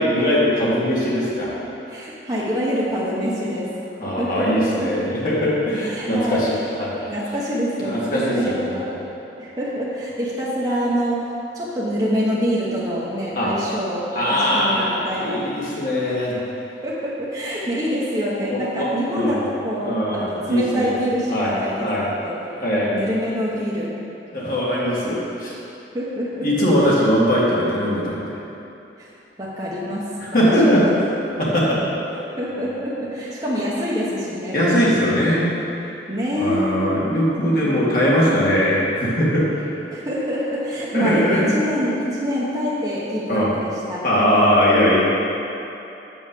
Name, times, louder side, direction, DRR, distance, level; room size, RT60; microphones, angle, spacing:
voice 1, 0.0-1.5 4.0-7.1 7.8-8.8 13.4-13.5 14.1-16.4 18.5-18.9 19.1-19.4 19.8-20.9 21.3-21.5 21.8-22.1 22.6-23.0 24.3-25.5 26.4-28.4 30.3-30.8 31.4-31.8 34.5-35.4 36.4-39.4 40.9-41.5 43.3-43.5 44.0-45.0, equal, 50° left, -7 dB, 2.0 m, -20 dB
voice 2, 1.9-3.7 4.2-5.0 5.8-6.7 7.1-8.9 9.4-15.5 16.3-16.4 16.8-21.9 22.2-22.4 22.8-24.0 25.9-26.7 29.0-29.1 29.4-30.9 32.1-34.6 36.1-36.8 39.9-44.0, equal, 20° right, -7 dB, 1.0 m, -26 dB
7.0 x 5.4 x 6.8 m, 2.9 s
head